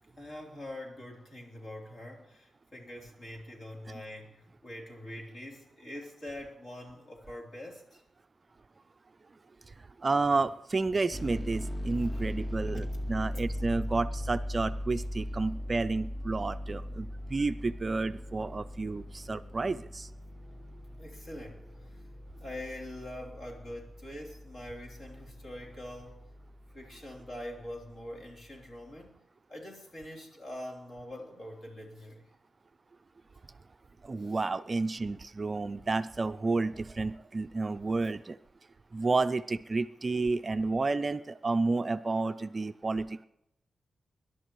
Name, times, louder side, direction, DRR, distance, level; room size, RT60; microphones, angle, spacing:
voice 1, 0.1-8.0 11.4-11.5 12.1-12.5 21.0-22.0 22.4-26.2 26.7-29.2 29.5-32.2 34.2-34.4, left 1 dB, 50° left, -1 dB, 3.3 m, -44 dB
voice 2, 9.7-20.1 34.0-38.4 38.9-43.3, right 3 dB, 30° right, 11 dB, 0.4 m, -31 dB
sound 1, 11.1-28.6, equal, 15° left, 0.7 m, -39 dB
24.5 x 11.5 x 3.1 m, 0.82 s
wide cardioid pair, 120°, 0 cm